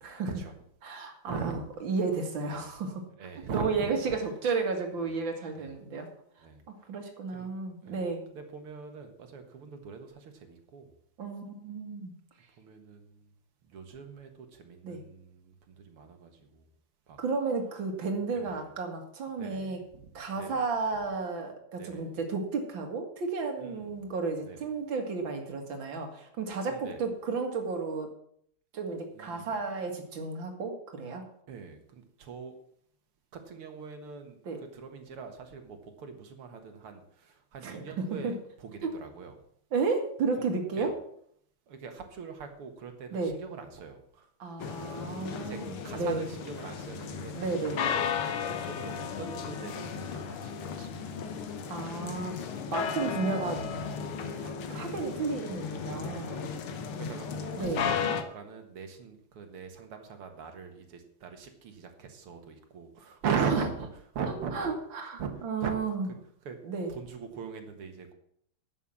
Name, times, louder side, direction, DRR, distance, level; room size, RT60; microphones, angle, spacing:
voice 1, 0.0-0.3 0.8-3.0 3.5-6.1 6.9-8.3 11.2-12.1 14.8-15.0 17.2-19.8 20.1-28.1 28.7-31.2 34.4-34.6 37.6-38.3 38.8-38.9 39.7-41.0 43.1-43.4 44.4-46.3 47.3-47.9 51.7-52.4 52.7-53.6 54.4-56.5 57.6-57.9 63.4-63.6 64.5-66.1 66.6-66.9, right 4 dB, 60° right, 3 dB, 2.7 m, -33 dB
voice 2, 1.3-1.6 2.4-2.7 3.2-3.9 5.6-5.7 6.4-6.6 7.3-7.5 7.9-8.1 8.3-10.9 12.6-13.1 13.7-16.6 17.1-17.2 18.3-18.6 19.4-20.0 20.3-20.6 21.8-22.1 23.6-23.9 24.4-24.6 26.7-27.0 29.2-29.5 31.5-32.5 33.3-34.4 34.7-38.4 38.6-39.3 40.4-40.5 40.8-40.9 41.7-44.3 45.4-45.6 45.8-47.3 47.7-48.0 48.4-51.1 52.8-53.0 54.2-54.8 56.3-56.5 57.0-63.7 64.1-64.6 65.2-65.3 65.6-65.7 66.5-66.6 66.9-68.1, right 6 dB, 80° right, 6 dB, 2.5 m, -40 dB
sound 1, 44.6-58.2, left 6 dB, 75° left, 2.0 m, -35 dB
11.0 x 7.2 x 7.3 m, 0.67 s
omnidirectional pair, 2.4 m